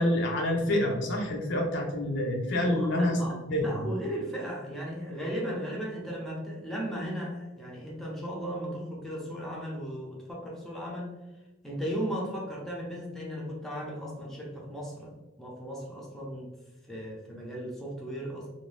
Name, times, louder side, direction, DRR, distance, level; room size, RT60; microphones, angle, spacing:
voice 1, 0.0-3.2 3.5-3.8, left 1 dB, 65° left, 1 dB, 0.6 m, -27 dB
voice 2, 2.6-11.1 11.6-16.5 16.9-18.5, equal, ahead, -4 dB, 0.6 m, -36 dB
2.6 x 2.1 x 3.2 m, 1.1 s
head